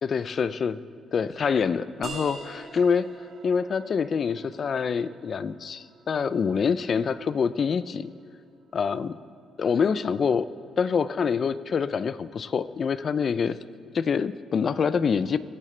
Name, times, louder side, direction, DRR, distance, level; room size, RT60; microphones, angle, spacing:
voice 1, 0.0-0.8 1.1-3.1 3.4-8.1 8.7-9.2 9.6-10.5 10.8-13.6 13.9-15.4, left 6 dB, 50° left, 15 dB, 0.4 m, -26 dB
sound 1, 2.0-7.4, right 4 dB, 65° right, 3.5 m, -45 dB
23.0 x 8.6 x 3.3 m, 2.4 s
cardioid pair, 90°, 0 cm